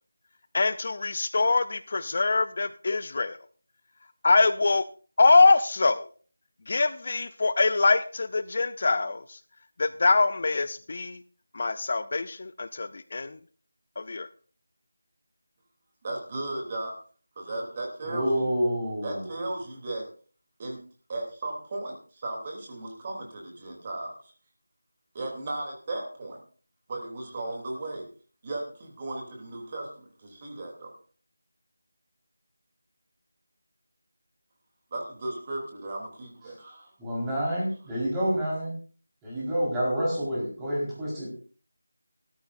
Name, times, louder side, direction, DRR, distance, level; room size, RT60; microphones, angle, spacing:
voice 1, 0.5-3.4 4.2-4.9 5.2-6.1 6.7-9.4 9.8-11.2 11.5-13.4 14.0-14.3, left 3 dB, 45° left, 14 dB, 0.6 m, -24 dB
voice 2, 16.0-17.0 17.4-18.5 19.0-20.1 20.6-20.8 21.1-24.1 25.1-26.4 26.9-28.1 28.4-30.9 34.9-36.9, right 2 dB, 30° right, 0 dB, 3.0 m, -35 dB
voice 3, 18.0-19.2 37.0-38.7 39.2-41.3, equal, 10° right, -7 dB, 4.4 m, -28 dB
17.0 x 13.5 x 2.6 m, 0.41 s
figure-of-eight pair, 170°, 0 cm